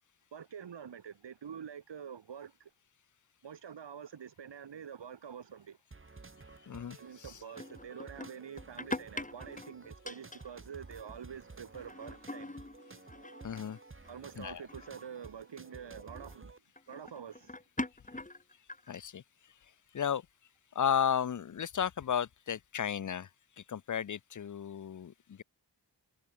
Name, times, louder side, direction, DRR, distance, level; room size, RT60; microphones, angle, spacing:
voice 1, 0.3-2.7 3.4-5.8 7.0-12.5 14.1-16.5 16.9-17.6, right 7 dB, 85° right, 0.9 m, -46 dB
sound 1, 5.9-16.6, right 3 dB, 30° right, 1.1 m, -53 dB
voice 2, 6.7-7.3 13.4-13.8 14.4-14.6 18.9-19.2 19.9-20.2 20.8-23.3 23.6-25.4, left 8 dB, 45° left, 0.5 m, -34 dB
sound 2, 7.5-10.6 10.9-11.2 11.5-14.2 14.7-15.1 16.1-16.4 16.8-19.0, left 2 dB, 20° left, 1.3 m, -43 dB
wide cardioid pair, 50°, 42 cm